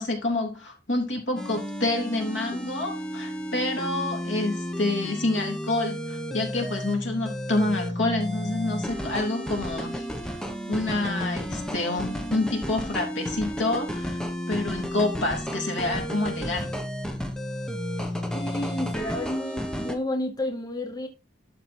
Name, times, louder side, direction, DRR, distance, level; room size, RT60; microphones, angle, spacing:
voice 1, 0.0-10.3 10.7-14.2 14.5-16.7, left 2 dB, 75° left, 3.5 m, -28 dB
sound 1, 1.4-20.0, equal, 5° left, 1.1 m, -32 dB
voice 2, 18.3-21.1, left 1 dB, 20° left, 0.8 m, -31 dB
12.0 x 4.9 x 4.4 m
head